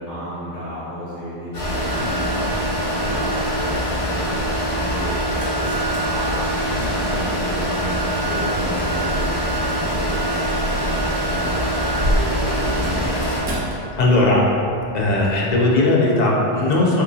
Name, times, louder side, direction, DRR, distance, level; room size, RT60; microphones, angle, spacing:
voice 1, 0.0-13.1, equal, 15° right, -15 dB, 1.5 m, -31 dB
sound 1, 1.5-13.4, equal, 35° left, 0.9 m, -23 dB
sound 2, 4.4-15.5, equal, 65° right, 0.9 m, -32 dB
voice 2, 14.0-14.4 14.9-17.0, left 2 dB, 55° left, -4 dB, 0.5 m, -17 dB
3.7 x 2.9 x 2.6 m, 2.8 s
omnidirectional pair, 1.1 m